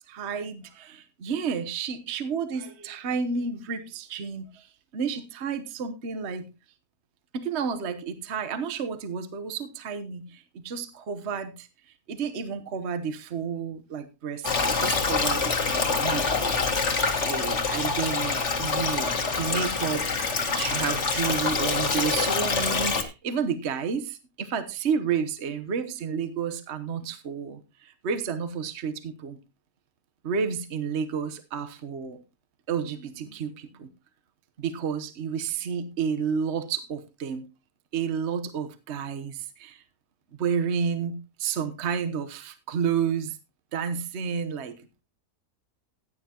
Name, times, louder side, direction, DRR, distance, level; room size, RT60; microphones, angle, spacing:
voice 1, 0.1-4.7 4.9-6.5 7.3-11.7 12.1-16.8 17.2-20.2 20.5-29.4 30.2-32.2 32.7-33.9 34.6-37.4 37.9-39.8 40.4-43.4 43.7-44.7, right 6 dB, 45° right, 10 dB, 1.2 m, -31 dB
Stream, 14.4-23.0, left 4 dB, 50° left, 1.7 m, -26 dB
15.5 x 9.4 x 2.9 m, 0.26 s
omnidirectional pair, 1.7 m